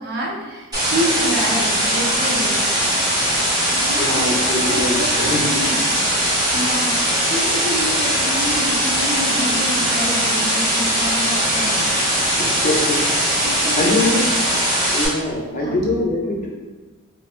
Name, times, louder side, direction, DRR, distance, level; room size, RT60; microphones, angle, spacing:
voice 1, 0.0-2.6 3.7-5.8 6.5-7.0 7.3-11.8 12.4-12.7 13.4-13.9 15.5-15.8, equal, 50° right, -3 dB, 0.5 m, -28 dB
sound 1, 0.7-15.1, equal, 20° right, 0.8 m, -20 dB
voice 2, 4.0-5.4 12.4-13.0 13.8-14.2 14.9-16.5, left 2 dB, 40° left, -1 dB, 0.4 m, -23 dB
2.4 x 2.1 x 2.9 m, 1.2 s
head